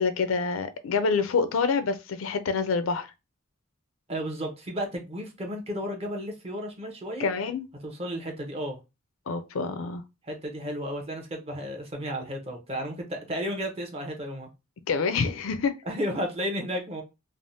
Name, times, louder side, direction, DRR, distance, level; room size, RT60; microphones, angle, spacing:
voice 1, 0.0-3.1 7.2-7.7 9.3-10.0 14.9-15.7, left 5 dB, 80° left, 0.4 m, -26 dB
voice 2, 4.1-7.3 7.8-8.8 10.3-14.5 15.9-17.0, equal, 30° right, 0.7 m, -33 dB
3.3 x 2.0 x 2.6 m
head